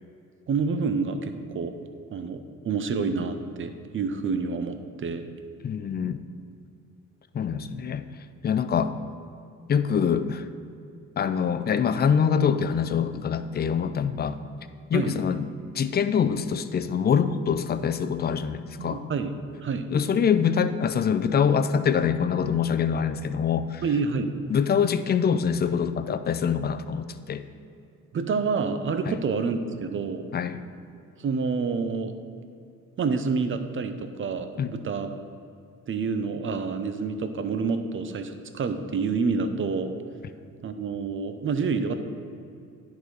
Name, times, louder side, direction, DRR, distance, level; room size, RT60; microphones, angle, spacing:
voice 1, 0.5-1.7 2.1-5.3 14.9-15.2 18.8-19.3 19.6-19.9 23.8-24.4 28.1-30.2 31.2-32.1 33.0-35.1 35.9-39.9 40.6-42.0, right 4 dB, 40° right, 8 dB, 0.7 m, -28 dB
voice 2, 5.6-6.2 7.3-8.1 8.4-9.0 9.7-10.5 11.2-14.4 14.9-19.0 19.9-23.8 24.5-27.4 29.1-29.2 30.3-30.6 34.6-34.7, left 7 dB, 35° left, 11 dB, 0.4 m, -24 dB
10.5 x 4.1 x 4.7 m, 2.5 s
cardioid pair, 90°, 30 cm